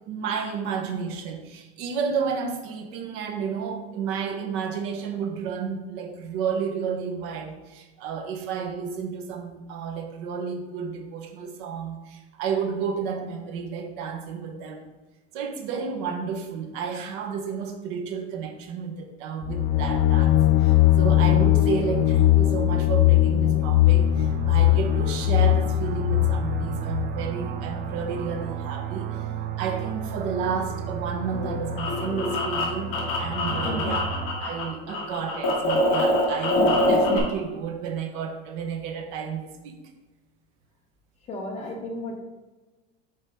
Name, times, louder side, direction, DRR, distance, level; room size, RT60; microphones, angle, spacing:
voice 1, 0.1-14.9 15.3-29.3 29.6-34.1 34.4-39.8, right 6 dB, 50° right, 5 dB, 1.0 m, -31 dB
sound 1, 19.4-27.1, left 13 dB, 85° left, 0.5 m, -20 dB
sound 2, 23.5-34.3, right 6 dB, 30° right, 0.4 m, -34 dB
sound 3, 31.3-34.6 34.9-37.2, left 1 dB, 45° left, 1.8 m, -24 dB
voice 2, 33.5-33.9 41.3-42.2, left 1 dB, 20° left, -1 dB, 1.2 m, -33 dB
7.7 x 4.5 x 3.5 m, 1.2 s
cardioid pair, 175°, 30 cm